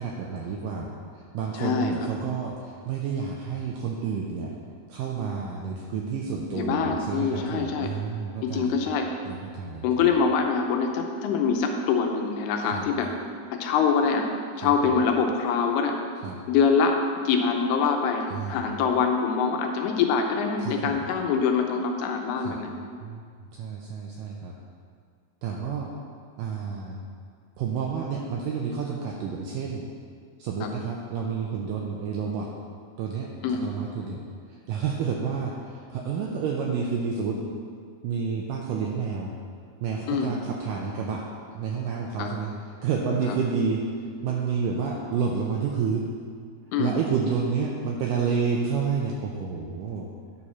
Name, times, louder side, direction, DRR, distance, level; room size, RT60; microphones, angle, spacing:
voice 1, 0.0-4.5 4.9-8.8 9.3-9.9 12.7-12.9 14.6-14.9 16.2-16.4 18.3-18.6 20.6-21.1 22.4-22.6 23.0-23.2 23.6-24.5 25.4-25.9 26.4-27.0 27.6-29.9 30.4-32.5 33.0-33.3 33.6-34.2 34.5-37.4 38.0-39.3 39.8-41.2 41.5-42.5 42.8-43.8 44.2-46.1 46.8-50.1, right 6 dB, 85° right, -1 dB, 2.0 m, -29 dB
voice 2, 1.6-2.1 6.5-7.9 8.4-9.1 9.8-13.1 13.5-14.3 14.6-16.0 16.5-22.7 30.6-30.7 33.4-33.7 40.1-40.3 42.2-42.3 43.3-43.4 46.7-47.0, left 5 dB, 85° left, 3 dB, 2.7 m, -24 dB
10.0 x 4.2 x 5.9 m, 2.1 s
omnidirectional pair, 4.6 m